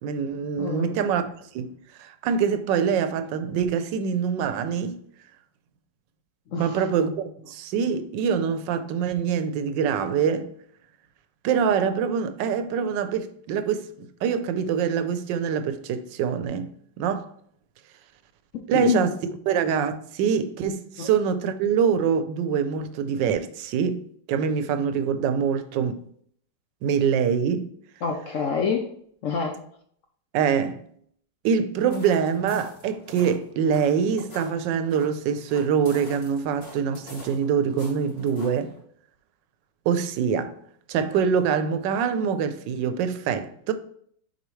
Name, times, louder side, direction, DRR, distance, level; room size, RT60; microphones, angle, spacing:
voice 1, 0.0-1.7 2.0-5.0 6.5-10.5 11.4-16.7 17.0-17.3 18.7-19.1 19.5-26.0 26.8-27.7 30.3-30.8 31.4-38.7 39.9-40.5 40.9-43.7, right 7 dB, 85° right, 1.3 m, -24 dB
voice 2, 0.6-0.9 6.5-6.8 18.5-19.1 21.0-21.1 28.0-28.9 29.2-29.6, left 6 dB, 65° left, 0.8 m, -27 dB
sound 1, 31.8-38.8, left 2 dB, 35° left, 2.3 m, -45 dB
6.8 x 4.5 x 3.1 m
omnidirectional pair, 1.9 m